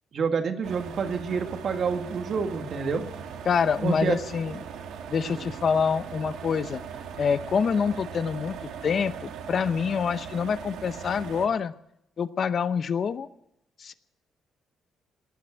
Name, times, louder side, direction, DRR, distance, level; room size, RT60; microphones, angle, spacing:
voice 1, 0.1-3.1 3.8-4.2 5.4-5.5, right 5 dB, 55° right, 6 dB, 1.9 m, -28 dB
sound 1, 0.6-11.5, right 7 dB, 85° right, 1.6 m, -39 dB
voice 2, 3.5-4.6 5.1-6.8 7.2-8.6 8.8-11.7 12.2-13.3 13.8-13.9, left 6 dB, 50° left, 13 dB, 0.7 m, -26 dB
19.0 x 7.7 x 9.9 m, 0.80 s
cardioid pair, 90°, 0 cm